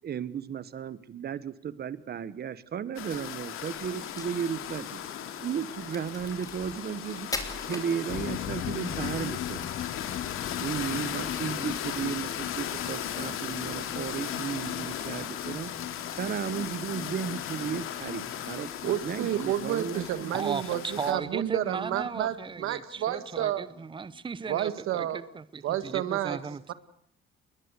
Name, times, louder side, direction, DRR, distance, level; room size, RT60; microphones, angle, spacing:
voice 1, 0.0-5.0 5.4-7.3 7.7-9.7 10.6-15.7 16.1-18.7 19.0-20.3, right 8 dB, 50° right, 16 dB, 1.2 m, -34 dB
sound 1, 3.0-21.1, left 9 dB, 80° left, 2.8 m, -37 dB
Crack, 4.0-8.6, left 2 dB, 15° left, 3.4 m, -40 dB
sound 2, 8.1-23.5 23.7-23.8 24.1-24.2, left 11 dB, 55° left, 0.9 m, -41 dB
voice 2, 18.8-23.6 24.5-25.3 25.6-26.4 26.7-26.8, right 12 dB, 80° right, 13 dB, 1.6 m, -30 dB
voice 3, 20.3-26.6, right 5 dB, 25° right, 17 dB, 0.9 m, -36 dB
21.5 x 21.0 x 8.2 m, 0.66 s
cardioid pair, 100°, 21 cm